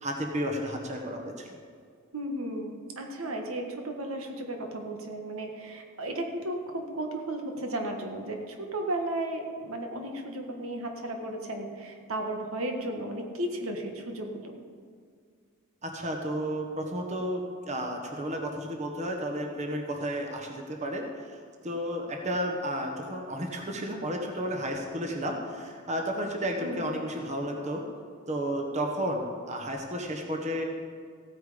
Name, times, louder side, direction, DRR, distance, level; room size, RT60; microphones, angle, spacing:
voice 1, 0.0-1.5 15.8-17.4 17.7-21.0 21.6-27.8 28.3-30.6, equal, 35° right, 2 dB, 1.3 m, -32 dB
voice 2, 2.1-14.6 26.6-26.9, right 1 dB, 80° right, 3 dB, 1.6 m, -34 dB
15.5 x 9.1 x 5.1 m, 2.1 s
head